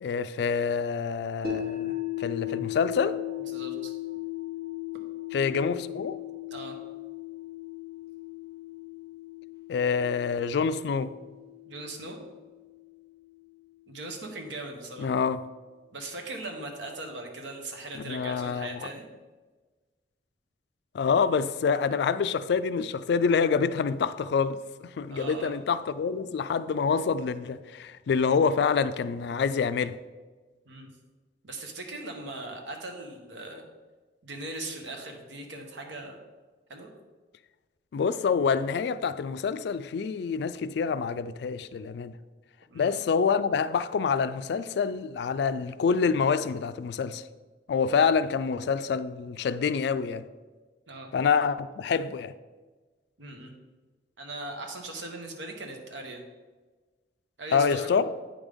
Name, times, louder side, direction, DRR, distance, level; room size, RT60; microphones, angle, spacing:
voice 1, 0.0-1.9 2.2-3.2 5.3-6.2 9.7-11.1 15.0-15.4 17.9-18.8 20.9-30.0 37.9-42.1 42.7-47.2 47.7-50.3 51.1-52.3 57.5-58.1, left 5 dB, 65° left, 0.3 m, -27 dB
sound 1, 1.4-13.6, left 13 dB, 55° right, 1.3 m, -37 dB
voice 2, 3.5-3.9 6.5-6.7 11.7-12.2 13.9-15.1 15.9-19.1 25.1-25.5 30.7-30.9 31.4-33.7 34.2-36.2 36.7-36.9 42.7-43.0 50.9-51.1 53.2-53.5 54.2-56.2 57.4-57.9, right 2 dB, 85° right, 1.1 m, -39 dB
8.9 x 5.2 x 3.6 m
head